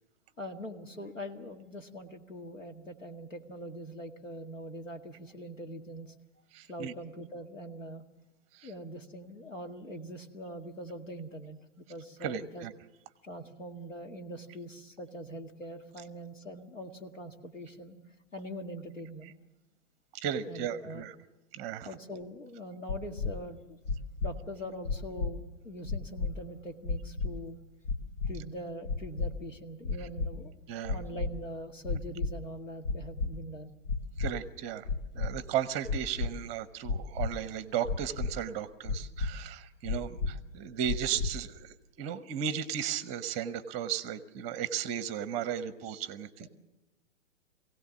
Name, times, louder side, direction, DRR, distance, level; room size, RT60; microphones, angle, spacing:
voice 1, 0.4-6.1 6.7-8.0 8.6-12.7 13.2-18.0 18.3-19.3 20.5-21.1 21.8-23.8 24.2-27.6 28.3-30.5 30.9-33.7 46.4-46.5, equal, 90° left, 4 dB, 2.0 m, -43 dB
voice 2, 6.5-6.9 8.5-8.7 12.2-12.7 20.1-21.1 21.5-21.9 30.7-31.0 34.2-34.9 35.1-46.5, right 9 dB, 20° right, 15 dB, 0.8 m, -35 dB
sound 1, 22.9-23.3 23.8-24.3 24.8-25.3 25.8-26.3 26.8-27.3 27.8-28.3 28.8-29.3 29.8-30.3 30.8-31.3 31.8-32.3 32.8-33.3 33.8-34.3 34.8-35.3 35.8-36.3 36.8-37.3 37.8-38.3 38.8-39.3 39.8-40.3 40.8-41.3, left 4 dB, 70° left, 2.4 m, -31 dB
23.0 x 17.0 x 7.2 m, 1.0 s
figure-of-eight pair, 125°, 37 cm